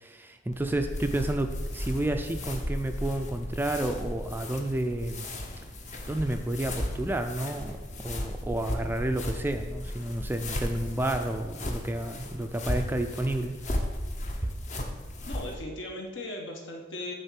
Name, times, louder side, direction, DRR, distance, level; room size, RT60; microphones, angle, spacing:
voice 1, 0.0-5.3 6.0-13.7, right 1 dB, 10° right, 6 dB, 0.3 m, -31 dB
sound 1, 0.5-15.5, left 1 dB, 40° left, 0.8 m, -35 dB
voice 2, 15.2-17.1, left 1 dB, 70° left, 1 dB, 1.3 m, -37 dB
8.9 x 3.6 x 5.8 m, 1.3 s
head